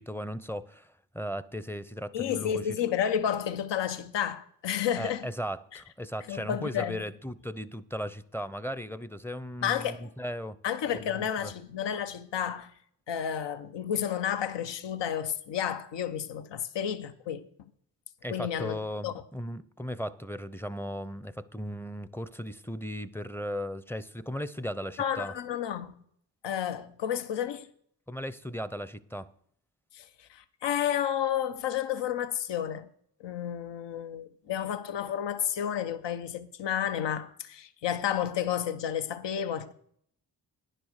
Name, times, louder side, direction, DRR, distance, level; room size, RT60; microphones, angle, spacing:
voice 1, 0.0-2.8 5.0-10.6 11.0-11.5 18.2-25.3 28.1-29.3, equal, 5° left, 0.6 m, -37 dB
voice 2, 2.1-5.3 5.7-5.8 6.3-7.0 9.6-10.1 10.6-12.7 13.1-17.5 18.3-18.8 19.0-19.1 25.0-25.9 26.4-27.7 29.9-32.9 33.2-39.7, left 9 dB, 70° left, 0.9 m, -31 dB
10.0 x 6.6 x 6.5 m
supercardioid pair, 40°, 44 cm